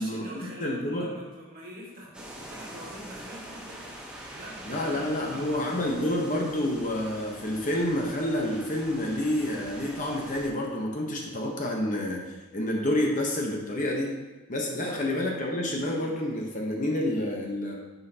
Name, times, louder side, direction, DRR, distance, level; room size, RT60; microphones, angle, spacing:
voice 1, 0.0-4.0 4.3-5.8 14.6-15.0, right 1 dB, 45° right, -4 dB, 2.1 m, -44 dB
voice 2, 0.6-1.1 4.6-14.1 14.5-17.8, left 1 dB, 35° left, -1 dB, 1.0 m, -29 dB
sound 1, 2.1-10.5, right 1 dB, 5° right, 0.9 m, -44 dB
10.0 x 5.6 x 2.9 m, 1.3 s
head